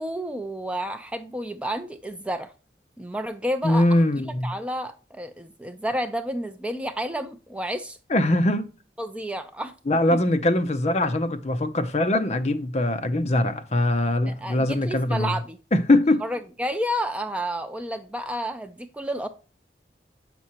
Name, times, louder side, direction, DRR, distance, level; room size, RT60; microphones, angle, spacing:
voice 1, 0.0-2.5 3.0-3.8 4.2-8.0 9.0-9.7 10.1-10.2 14.3-15.6 16.2-19.3, equal, 5° right, 0.4 m, -30 dB
voice 2, 3.6-4.5 8.1-8.7 9.9-15.3 15.7-16.2, left 1 dB, 35° left, 0.6 m, -22 dB
7.5 x 6.0 x 2.9 m
head